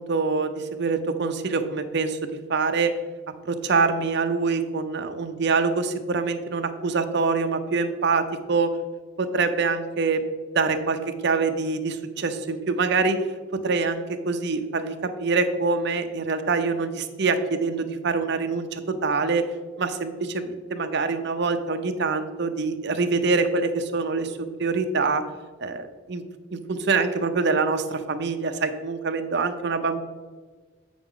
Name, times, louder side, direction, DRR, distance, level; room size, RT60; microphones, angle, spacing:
voice 1, 0.0-3.0 3.4-8.8 9.2-10.2 10.5-13.2 13.5-19.5 19.8-25.2 25.6-26.2 26.5-30.0, right 4 dB, 60° right, 7 dB, 0.7 m, -25 dB
7.9 x 6.1 x 3.8 m, 1.4 s
head